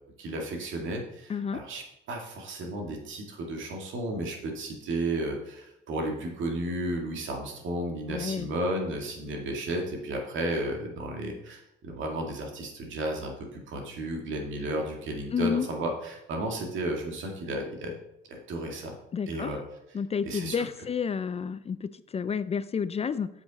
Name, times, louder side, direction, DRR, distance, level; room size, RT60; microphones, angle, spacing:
voice 1, 0.2-18.0 18.3-18.9 19.3-19.6 20.2-20.7, right 1 dB, 75° right, 1 dB, 2.1 m, -33 dB
voice 2, 1.3-1.6 8.1-8.5 15.3-15.7 19.1-19.5 19.9-23.3, left 6 dB, 30° left, 14 dB, 0.4 m, -30 dB
7.9 x 6.7 x 4.1 m, 0.82 s
cardioid pair, 90°, 20 cm